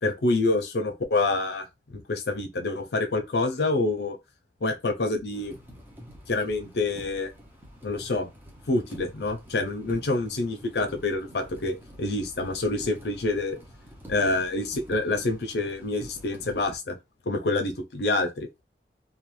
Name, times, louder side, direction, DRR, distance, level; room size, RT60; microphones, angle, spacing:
voice 1, 0.0-4.2 4.6-5.6 6.3-7.3 7.8-8.3 8.7-13.6 14.1-17.0 17.3-18.5, left 2 dB, 70° left, 0.6 m, -27 dB
sound 1, 5.3-16.8, equal, 10° right, 0.6 m, -48 dB
2.4 x 2.2 x 3.1 m
head